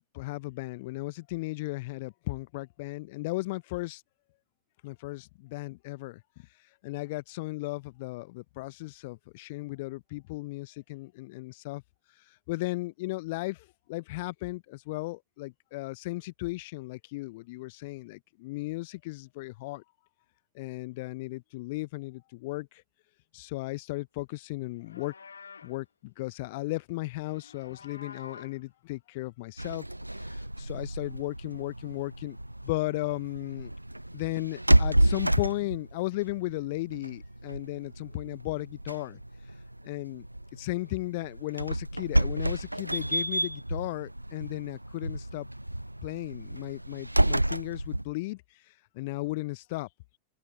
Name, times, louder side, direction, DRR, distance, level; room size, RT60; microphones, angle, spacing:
voice 1, 0.1-4.0 4.8-11.8 12.1-19.8 20.5-22.8 23.3-25.1 25.6-29.8 30.1-32.4 32.6-33.7 34.1-40.3 40.5-45.5 46.0-49.9, left 21 dB, 50° left, 0.6 m, -36 dB
Livestock farm animals working animals, 24.7-25.8 27.1-28.6, left 5 dB, 75° left, 0.9 m, -49 dB
sound 1, 29.6-48.0, right 1 dB, 85° right, 0.3 m, -30 dB
open air
figure-of-eight pair, 90°, 0 cm